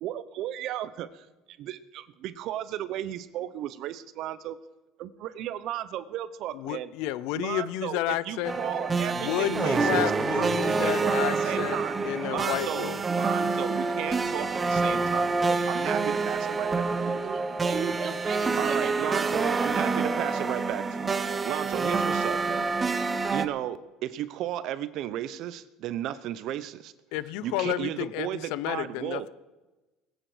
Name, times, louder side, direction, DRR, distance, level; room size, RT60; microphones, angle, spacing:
voice 1, 0.0-4.6 5.0-6.9 7.3-11.2 11.4-12.0 12.3-16.7 17.0-17.2 18.6-22.7 23.3-26.9 27.4-29.3, right 12 dB, 60° right, 14 dB, 0.9 m, -34 dB
voice 2, 6.5-8.5 9.1-11.8 12.0-13.0 27.1-29.3, left 15 dB, 80° left, 17 dB, 0.6 m, -31 dB
sound 1, 8.4-23.5, right 4 dB, 20° right, 0.9 m, -27 dB
voice 3, 17.2-20.4, right 6 dB, 40° right, 7 dB, 1.8 m, -36 dB
21.0 x 9.1 x 5.0 m, 1.1 s
cardioid pair, 120°, 0 cm